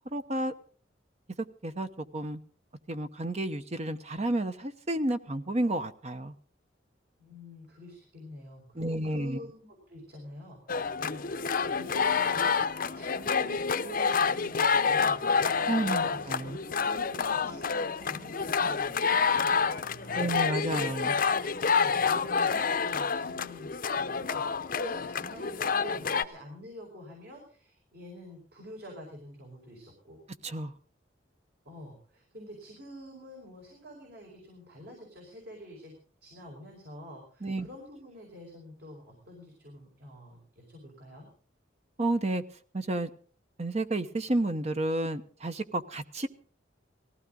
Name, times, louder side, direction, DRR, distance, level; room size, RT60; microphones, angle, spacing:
voice 1, 0.1-0.5 1.6-2.4 2.9-6.3 8.7-9.4 15.7-16.6 20.1-21.2 30.4-30.7 37.4-37.7 42.0-42.4 42.7-43.1 43.6-46.3, right 1 dB, 35° right, 9 dB, 0.9 m, -31 dB
voice 2, 7.2-12.7 12.9-15.5 16.0-20.4 21.7-30.2 31.6-35.9 36.2-41.3, equal, 60° right, 1 dB, 4.9 m, -47 dB
sound 1, 10.7-26.2, left 5 dB, 50° left, 0.7 m, -28 dB
19.0 x 15.5 x 3.9 m, 0.43 s
head